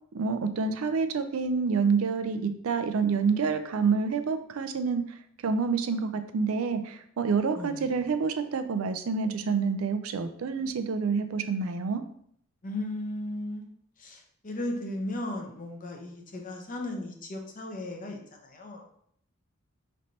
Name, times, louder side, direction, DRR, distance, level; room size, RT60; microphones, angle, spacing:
voice 1, 0.1-5.0 5.4-12.0, right 5 dB, 80° right, 9 dB, 0.4 m, -28 dB
voice 2, 7.5-8.0 12.6-13.7 14.0-18.9, left 1 dB, 40° left, 2 dB, 0.7 m, -36 dB
5.2 x 3.2 x 2.8 m, 0.66 s
head